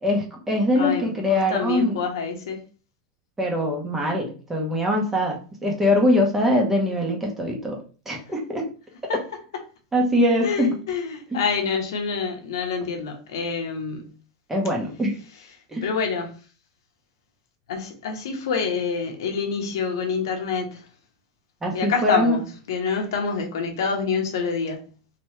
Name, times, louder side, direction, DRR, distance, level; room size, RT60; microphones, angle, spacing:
voice 1, 0.0-2.0 3.4-8.6 9.9-10.8 11.3-11.4 14.5-15.2 15.7-15.8 21.6-22.4, left 1 dB, 10° right, 1.0 m, -23 dB
voice 2, 0.8-2.6 9.1-9.2 10.4-14.1 15.8-16.3 17.7-20.8 21.7-24.9, left 5 dB, 85° left, 1.0 m, -27 dB
3.3 x 3.0 x 3.2 m
supercardioid pair, 140°, 2 cm